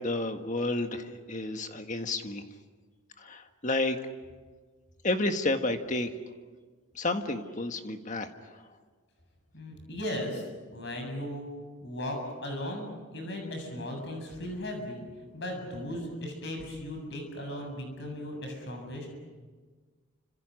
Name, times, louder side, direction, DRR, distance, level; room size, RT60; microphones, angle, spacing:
voice 1, 0.0-2.4 3.2-4.0 5.0-6.1 7.0-8.3, left 2 dB, 35° left, 6 dB, 1.7 m, -30 dB
voice 2, 9.5-10.5 10.7-11.5 11.8-15.0 15.3-19.1, left 1 dB, 55° left, 3 dB, 7.7 m, -37 dB
29.5 x 26.5 x 6.5 m, 1.4 s
head